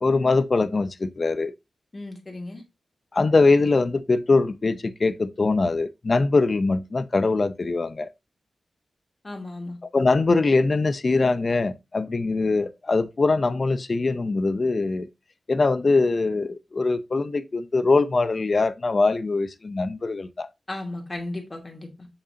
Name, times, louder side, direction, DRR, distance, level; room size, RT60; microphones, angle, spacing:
voice 1, 0.0-1.5 3.1-8.1 9.9-15.1 15.5-20.5, left 3 dB, 50° left, 0.6 m, -22 dB
voice 2, 1.9-2.6 9.2-9.8 20.7-22.1, left 2 dB, 35° left, 2.4 m, -35 dB
7.1 x 5.4 x 2.8 m
cardioid pair, 60°, 0 cm